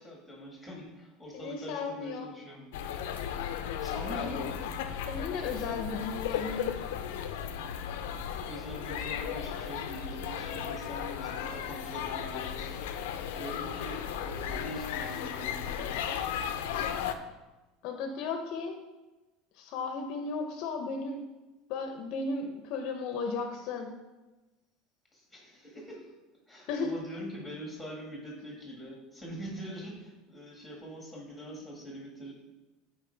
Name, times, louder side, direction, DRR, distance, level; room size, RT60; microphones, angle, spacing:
voice 1, 0.0-2.7 3.8-4.5 8.5-12.7 13.4-16.0 25.1-26.1 26.5-32.3, equal, ahead, -2 dB, 1.8 m, -43 dB
voice 2, 1.3-2.3 4.3-4.4 5.1-6.8 17.8-18.7 19.6-21.2 21.7-23.9 26.7-26.9, left 4 dB, 50° left, 4 dB, 0.7 m, -35 dB
sound 1, 2.7-17.2, left 8 dB, 90° left, 0.6 m, -35 dB
11.5 x 4.6 x 3.4 m, 1.1 s
cardioid pair, 170°, 0 cm